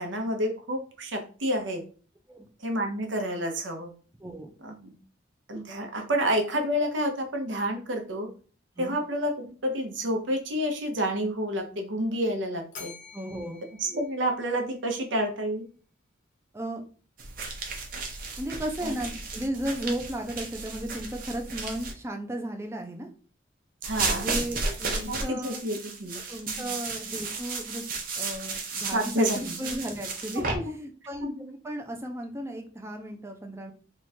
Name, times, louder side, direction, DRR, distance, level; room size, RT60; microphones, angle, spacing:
voice 1, 0.0-1.8 2.6-3.9 4.6-4.9 5.5-8.3 8.8-12.9 13.8-15.6 18.8-18.9 23.8-24.3 25.0-26.2 26.6-26.8 28.9-29.6 30.5-30.7 31.2-31.5, equal, 80° right, 4 dB, 0.9 m, -29 dB
voice 2, 4.2-4.5 8.8-9.0 13.1-13.6 16.5-16.8 18.4-23.1 24.1-25.6 26.3-27.8 28.1-31.3 31.6-33.7, right 1 dB, 15° right, 3 dB, 0.5 m, -35 dB
Bell, 12.7-15.0, left 5 dB, 45° left, 0.9 m, -48 dB
sound 1, 17.2-21.9 23.8-30.6, right 3 dB, 50° right, 0.8 m, -34 dB
3.0 x 2.4 x 4.2 m, 0.39 s
head